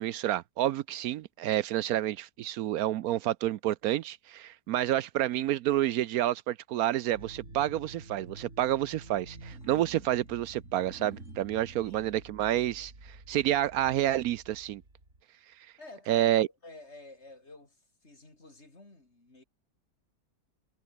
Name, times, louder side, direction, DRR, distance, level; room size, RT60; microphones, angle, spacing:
voice 1, 0.0-14.8 16.1-16.5, right 13 dB, 75° right, 1.0 m, -29 dB
sound 1, 7.1-15.2, right 2 dB, 50° right, 5.8 m, -49 dB
voice 2, 11.8-12.3 15.8-19.4, left 2 dB, 45° left, 4.6 m, -51 dB
omnidirectional pair, 1.6 m